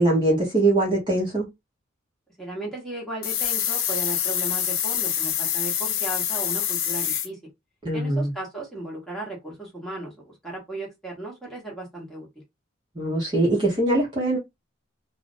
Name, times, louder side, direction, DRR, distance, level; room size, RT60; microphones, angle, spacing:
voice 1, 0.0-1.5 7.8-8.3 13.0-14.4, right 2 dB, 25° right, 0.8 m, -22 dB
voice 2, 2.4-7.4 7.9-12.3, right 2 dB, ahead, 1.0 m, -36 dB
sound 1, 3.2-7.3, left 10 dB, 80° left, 0.5 m, -26 dB
2.4 x 2.0 x 2.5 m
head